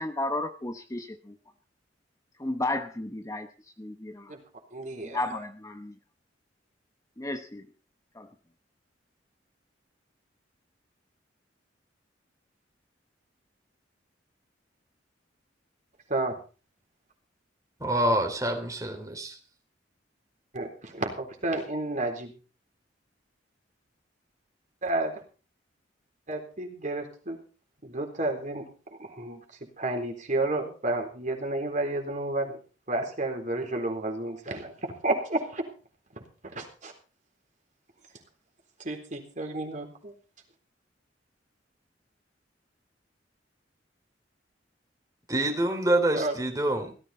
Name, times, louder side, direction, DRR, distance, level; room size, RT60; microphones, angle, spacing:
voice 1, 0.0-1.4 2.4-3.5 3.8-4.3 5.0-6.0 7.2-7.7 8.1-8.3, left 2 dB, 20° left, 7 dB, 0.9 m, -33 dB
voice 2, 4.7-5.2 16.1-16.4 20.5-22.3 24.8-25.1 26.3-27.4 27.8-29.4 29.8-32.6 32.9-35.7 36.4-36.9 38.8-40.1 46.1-46.4, right 2 dB, 45° right, 3 dB, 3.8 m, -31 dB
voice 3, 17.8-19.4 45.3-46.9, right 1 dB, 20° right, 4 dB, 3.1 m, -26 dB
17.0 x 14.0 x 4.3 m, 0.36 s
head